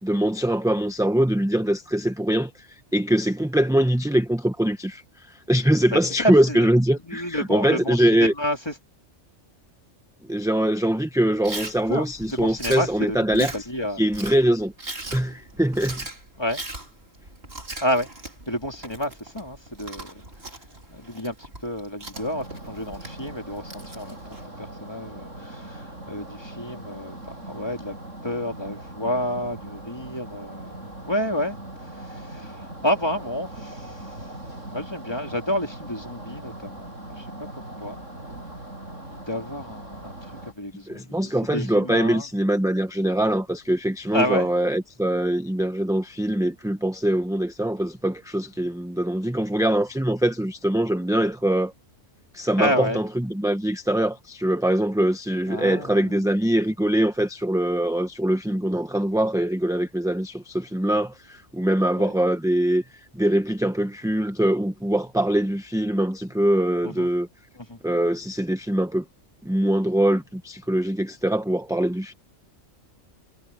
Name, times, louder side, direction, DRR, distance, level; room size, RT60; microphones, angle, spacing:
voice 1, 0.0-8.3 10.3-13.5 14.0-14.7 15.1-16.0 40.9-51.7 52.3-62.8 63.1-67.3 67.8-69.0 69.4-72.1, right 1 dB, 5° right, 0.8 m, -23 dB
voice 2, 5.9-6.7 7.0-8.7 11.9-14.0 16.4-16.6 17.8-18.1 18.5-20.1 20.9-24.2 24.6-27.9 28.2-30.7 31.0-31.6 31.8-34.1 34.7-37.5 37.8-38.0 39.1-40.3 40.6-42.3 44.1-44.5 52.6-53.0 55.5-56.2 62.0-62.1 66.8-67.1 67.6-67.8, equal, 20° left, 3.0 m, -30 dB
Chewing mastication, 11.4-24.4, right 2 dB, 50° right, 3.8 m, -39 dB
sound 1, 22.1-40.5, right 1 dB, 80° right, 7.2 m, -40 dB
omnidirectional pair, 1.3 m